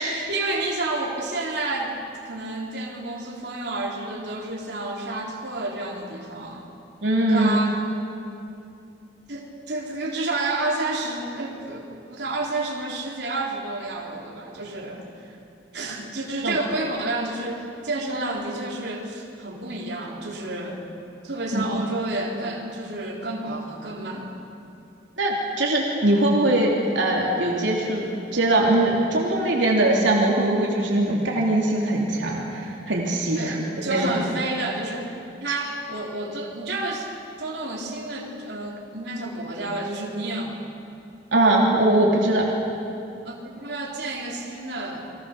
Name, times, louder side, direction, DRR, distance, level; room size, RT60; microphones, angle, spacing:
voice 1, 0.0-2.0 2.3-6.7 7.3-7.8 9.3-15.3 15.7-20.8 21.2-24.4 33.3-35.1 35.4-37.1 37.4-40.6 43.2-45.1, right 2 dB, 65° right, -2 dB, 4.0 m, -30 dB
voice 2, 7.0-7.6 16.4-16.6 21.5-21.6 25.2-28.1 28.3-33.6 33.8-34.1 41.3-42.5, right 1 dB, 85° right, -3 dB, 3.3 m, -21 dB
30.0 x 23.0 x 6.9 m, 2.6 s
head